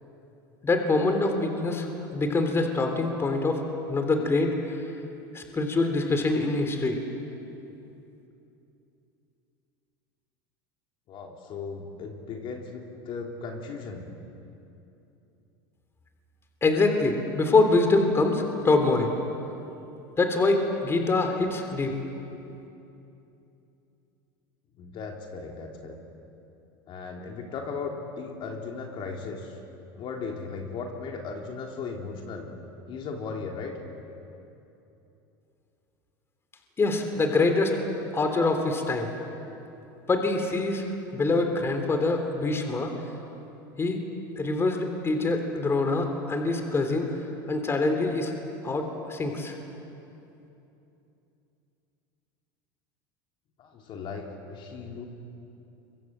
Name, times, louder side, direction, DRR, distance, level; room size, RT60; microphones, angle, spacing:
voice 1, 0.6-3.6 3.9-4.8 5.3-7.0 16.6-19.1 20.2-21.9 36.8-37.8 38.1-39.1 40.1-40.9 41.1-42.9 43.8-44.0 44.4-47.1 47.5-48.3 48.6-49.5, left 3 dB, 20° left, 5 dB, 3.4 m, -24 dB
voice 2, 11.1-14.1 24.8-26.0 26.9-29.5 30.0-32.5 32.9-33.7 53.6-55.0, left 4 dB, 45° left, 2 dB, 3.4 m, -37 dB
28.0 x 24.0 x 7.6 m, 2.9 s
supercardioid pair, 105°, 11 cm